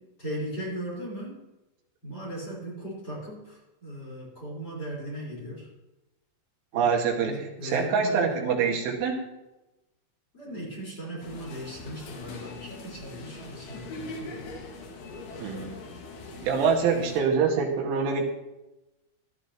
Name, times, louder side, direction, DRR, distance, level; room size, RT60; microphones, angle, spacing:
voice 1, 0.0-1.4 2.0-5.7 6.7-8.5 10.3-14.5, equal, 20° left, -5 dB, 4.6 m, -38 dB
voice 2, 6.7-9.2 15.4-15.8 16.4-18.2, right 6 dB, 80° right, 1 dB, 4.2 m, -25 dB
sound 1, 11.2-17.2, left 2 dB, 75° left, 4.3 m, -41 dB
18.5 x 12.5 x 3.0 m, 1.0 s
omnidirectional pair, 5.5 m